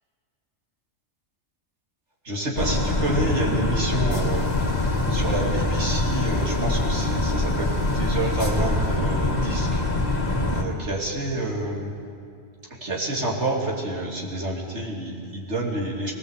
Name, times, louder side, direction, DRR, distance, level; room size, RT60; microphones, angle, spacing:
voice 1, 2.2-4.5 5.1-9.8 10.5-11.9 12.8-16.1, right 2 dB, 70° right, -2 dB, 3.4 m, -28 dB
sound 1, 2.6-10.6, left 2 dB, 35° left, 2.0 m, -24 dB
21.5 x 17.5 x 8.3 m, 2.4 s
omnidirectional pair, 1.2 m